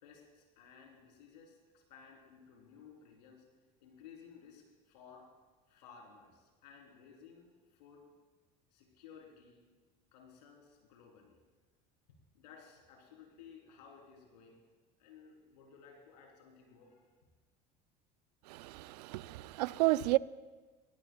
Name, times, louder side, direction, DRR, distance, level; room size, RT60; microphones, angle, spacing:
voice 1, 0.0-3.4 3.8-5.3 5.7-8.1 8.7-9.7 10.1-11.4 12.3-14.6 15.0-17.1, left 6 dB, 90° left, 3.7 m, -57 dB
voice 2, 18.5-20.2, right 18 dB, 85° right, 0.4 m, -31 dB
25.0 x 17.5 x 2.3 m
supercardioid pair, 85°, 21 cm